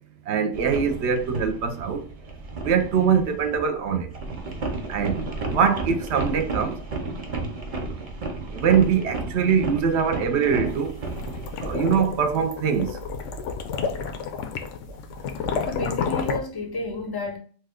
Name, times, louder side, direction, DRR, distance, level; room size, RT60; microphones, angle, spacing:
voice 1, 0.3-2.0 2.6-4.1 4.9-6.7 8.5-10.9 11.6-12.9, right 6 dB, 70° right, 0.8 m, -23 dB
sound 1, 0.5-3.6 4.0-12.5, right 3 dB, 40° right, 0.6 m, -33 dB
sound 2, 10.8-16.4, left 6 dB, 90° left, 0.9 m, -30 dB
voice 2, 15.7-17.4, left 1 dB, 30° left, 0.4 m, -31 dB
3.1 x 2.2 x 3.5 m
omnidirectional pair, 1.2 m